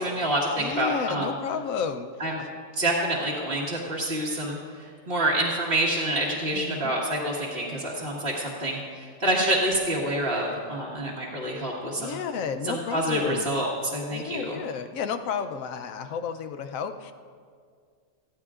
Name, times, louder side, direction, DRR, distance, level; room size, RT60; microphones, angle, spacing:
voice 1, 0.0-1.3 2.2-2.4 2.8-4.6 5.1-12.2 12.6-14.6, right 1 dB, 45° right, -8 dB, 1.9 m, -27 dB
voice 2, 0.6-2.1 2.4-2.5 6.5-6.9 12.0-13.5 14.1-17.1, left 6 dB, 80° left, 8 dB, 1.1 m, -32 dB
19.0 x 14.5 x 2.5 m, 2.1 s
omnidirectional pair, 1.4 m